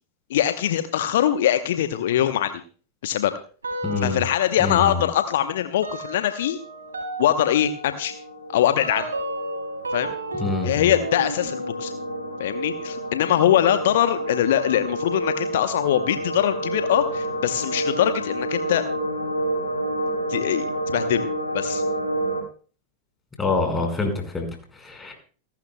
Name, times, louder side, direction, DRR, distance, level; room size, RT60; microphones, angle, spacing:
voice 1, 0.3-2.6 3.0-3.3 4.0-6.6 7.2-8.1 8.5-9.1 9.9-10.1 10.6-12.0 12.4-18.9 20.3-21.3 21.5-21.8, left 11 dB, 55° left, 10 dB, 0.8 m, -22 dB
sound 1, 3.6-4.4 4.7-15.0, right 1 dB, 75° right, 4.5 m, -35 dB
voice 2, 3.8-4.2 4.6-5.0 10.4-10.9 23.4-25.1, left 3 dB, 10° left, 3 dB, 4.8 m, -26 dB
sound 2, 5.9-22.4, right 1 dB, 90° left, 3.2 m, -30 dB
28.0 x 12.0 x 2.2 m, 0.41 s
figure-of-eight pair, 90°, 0 cm